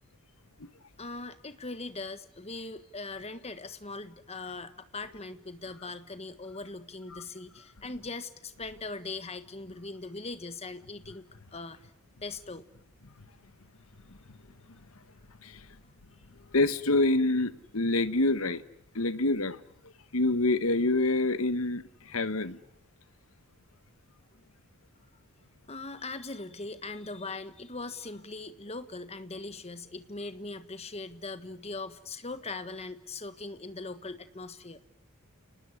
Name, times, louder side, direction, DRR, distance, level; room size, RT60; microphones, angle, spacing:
voice 1, 1.0-11.8 12.2-12.7 25.7-34.8, left 3 dB, 30° left, 1.5 m, -40 dB
voice 2, 16.5-18.6 18.9-19.6 20.1-22.6, left 2 dB, 65° left, 1.3 m, -26 dB
30.0 x 19.5 x 9.7 m
head